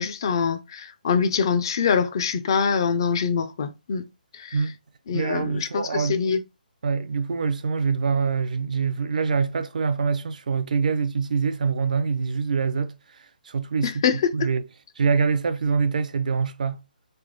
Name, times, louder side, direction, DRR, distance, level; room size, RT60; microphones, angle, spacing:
voice 1, 0.0-4.1 4.3-4.6 5.1-6.4 13.8-14.5, left 6 dB, 30° left, 0.4 m, -24 dB
voice 2, 5.1-6.2 6.8-12.9 13.5-14.6 15.0-16.8, right 5 dB, 55° right, 0.4 m, -25 dB
3.7 x 3.4 x 3.7 m
hypercardioid pair, 175°, 5 cm